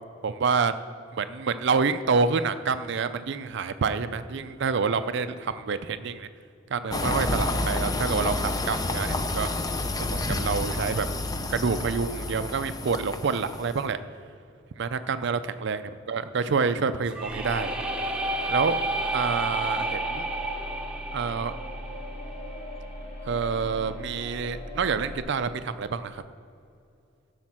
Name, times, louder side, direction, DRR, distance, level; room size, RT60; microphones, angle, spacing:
voice 1, 0.2-0.7 1.2-6.3 6.7-9.5 10.0-11.1 11.5-14.0 14.8-15.8 16.1-17.7 18.5-18.8 19.1-20.3 21.1-21.5 23.3-26.2, right 5 dB, 60° right, 11 dB, 0.4 m, -27 dB
sound 1, 6.9-13.8, left 2 dB, 20° left, 0.5 m, -29 dB
sound 2, 17.1-22.9, right 2 dB, 5° right, 0.8 m, -31 dB
sound 3, 17.2-25.2, left 1 dB, 45° left, 3.4 m, -39 dB
14.5 x 6.5 x 6.0 m, 2.5 s
head